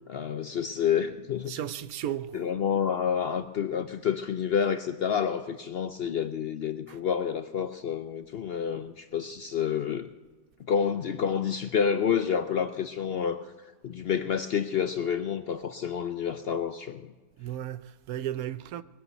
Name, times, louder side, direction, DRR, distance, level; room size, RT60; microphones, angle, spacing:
voice 1, 0.1-1.6 2.3-10.1 10.7-13.4 13.8-17.1, left 7 dB, 60° left, 0.6 m, -29 dB
voice 2, 1.5-2.5 6.9-7.0 17.4-18.8, right 11 dB, 75° right, 1.1 m, -35 dB
20.5 x 8.0 x 8.0 m
omnidirectional pair, 1.6 m